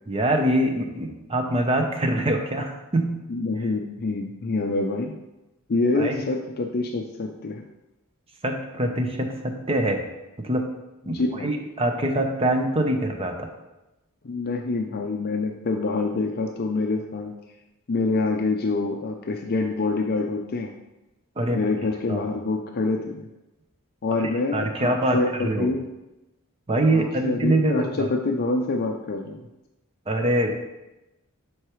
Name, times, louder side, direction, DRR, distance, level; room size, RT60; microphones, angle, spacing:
voice 1, 0.1-3.2 6.0-6.2 8.4-10.0 10.4-10.7 11.1-13.5 21.4-21.6 22.1-22.3 24.2-25.7 26.7-28.1 30.1-30.5, right 1 dB, 25° right, 4 dB, 0.7 m, -24 dB
voice 2, 3.3-5.1 5.7-7.6 11.1-11.5 14.2-17.3 17.9-20.7 21.5-23.3 24.0-25.9 26.9-29.5, left 3 dB, 45° left, 3 dB, 0.4 m, -26 dB
7.9 x 4.7 x 3.1 m, 0.98 s
head